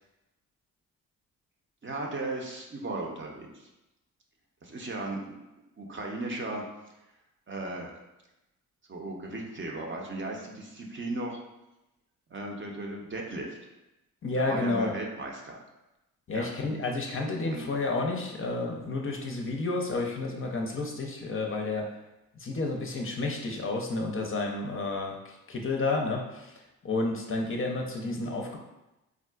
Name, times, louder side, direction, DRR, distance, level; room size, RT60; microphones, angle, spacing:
voice 1, 1.8-3.7 4.6-5.4 5.8-6.6 7.5-7.9 8.9-11.4 12.3-13.6 14.5-15.6 16.3-16.5 17.4-17.6, right 2 dB, 35° right, 0 dB, 0.6 m, -36 dB
voice 2, 14.2-14.9 16.3-21.9 22.4-28.6, left 3 dB, 35° left, 0 dB, 0.5 m, -31 dB
3.6 x 2.3 x 2.3 m, 0.96 s
supercardioid pair, 50°, 35 cm